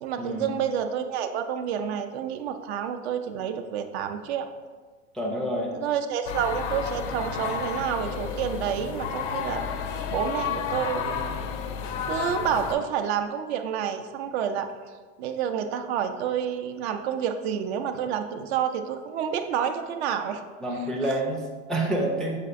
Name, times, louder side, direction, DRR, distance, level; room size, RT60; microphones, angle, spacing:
voice 1, 0.0-4.5 5.7-9.7 10.1-11.6 12.1-14.7 15.2-20.4, right 8 dB, 65° right, 8 dB, 0.5 m, -29 dB
voice 2, 5.1-5.7 20.6-22.4, right 1 dB, ahead, -3 dB, 0.4 m, -28 dB
sound 1, 6.3-12.7, left 7 dB, 70° left, 0.5 m, -31 dB
6.5 x 2.5 x 2.5 m, 1.4 s
hypercardioid pair, 115°, 36 cm